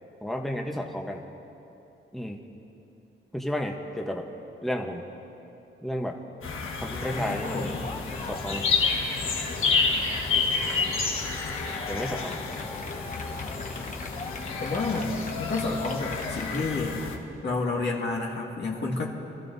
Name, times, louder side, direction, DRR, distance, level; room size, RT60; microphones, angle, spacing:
voice 1, 0.2-1.2 2.1-2.4 3.3-4.2 4.6-5.0 5.8-6.1 6.8-7.7 8.3-8.6 11.9-12.4, left 1 dB, ahead, 1 dB, 1.0 m, -32 dB
sound 1, 6.4-17.2, left 4 dB, 85° left, 1.5 m, -30 dB
voice 2, 6.9-7.9 14.6-17.0 17.4-19.1, left 3 dB, 55° left, -3 dB, 1.9 m, -30 dB
Yell, 7.0-16.7, left 4 dB, 35° left, 1.1 m, -40 dB
26.5 x 14.5 x 2.7 m, 2.9 s
wide cardioid pair, 120°, 21 cm